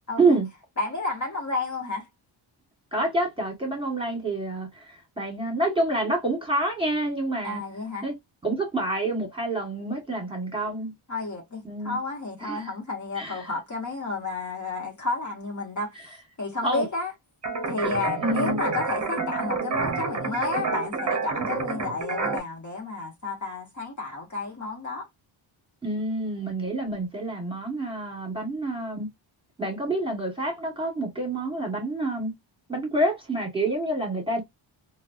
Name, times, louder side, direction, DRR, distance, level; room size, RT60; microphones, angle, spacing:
voice 1, 0.1-0.4 0.8-2.1 7.4-8.1 11.1-16.0 16.4-17.1 17.7-25.1, left 3 dB, 35° left, 1.0 m, -31 dB
voice 2, 2.9-7.6 8.0-8.1 8.4-10.9 11.6-12.0 12.4-12.7 13.1-13.5 16.6-16.8 18.2-18.6 25.8-29.1 29.6-32.3 32.7-34.4, right 2 dB, 10° right, 1.4 m, -27 dB
sound 1, 17.4-22.4, right 4 dB, 35° right, 0.7 m, -29 dB
3.9 x 2.1 x 2.4 m
wide cardioid pair, 140°, 49 cm